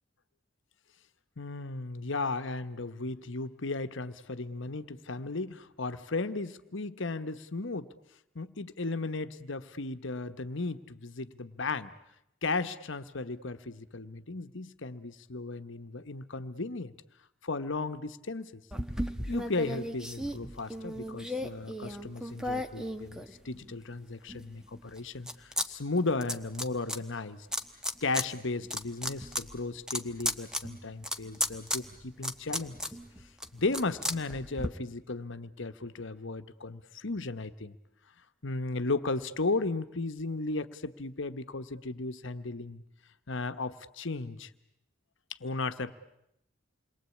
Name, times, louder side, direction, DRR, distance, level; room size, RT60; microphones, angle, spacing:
voice 1, 1.4-7.9 8.3-11.9 12.4-16.9 17.4-18.6 19.3-27.5 28.0-32.8 33.5-37.8 38.4-42.8 43.3-44.5 45.3-45.9, left 3 dB, 65° left, 10 dB, 1.2 m, -35 dB
sound 1, 18.7-23.8 24.3-25.7 25.9-27.0 27.5-28.3 28.6-34.7, equal, 5° right, 1.2 m, -35 dB
28.0 x 22.0 x 8.5 m, 0.80 s
head